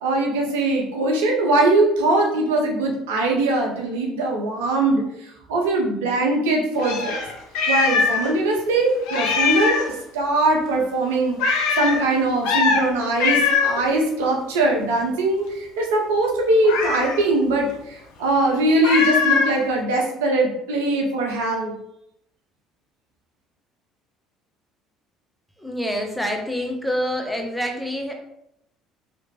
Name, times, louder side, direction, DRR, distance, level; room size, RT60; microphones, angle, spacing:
voice 1, 0.0-5.0 5.5-7.2 7.7-21.7, right 2 dB, 75° right, 0 dB, 0.5 m, -21 dB
Meow, 6.8-8.3 8.6-8.7 9.1-9.9 11.4-12.0 12.4-12.8 13.2-13.8 16.6-17.2 18.8-19.6, left 5 dB, 70° left, 0.5 m, -21 dB
voice 2, 25.6-28.1, equal, 5° left, 2 dB, 0.6 m, -26 dB
2.9 x 2.1 x 2.8 m, 0.78 s
hypercardioid pair, 60°, 0 cm